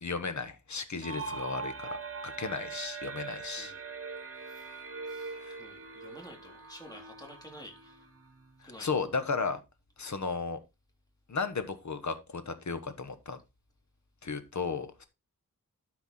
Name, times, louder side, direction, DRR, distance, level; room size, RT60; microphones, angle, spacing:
voice 1, 0.0-2.0 2.2-3.7 5.4-5.6 8.6-9.6 10.0-10.6 11.3-13.4 14.2-15.1, left 4 dB, 55° left, 1.3 m, -34 dB
sound 1, 1.0-8.6, right 4 dB, 40° right, 1.3 m, -42 dB
voice 2, 4.4-8.1 8.6-8.9, equal, 10° left, 3.4 m, -51 dB
12.0 x 4.7 x 4.3 m
wide cardioid pair, 130°, 35 cm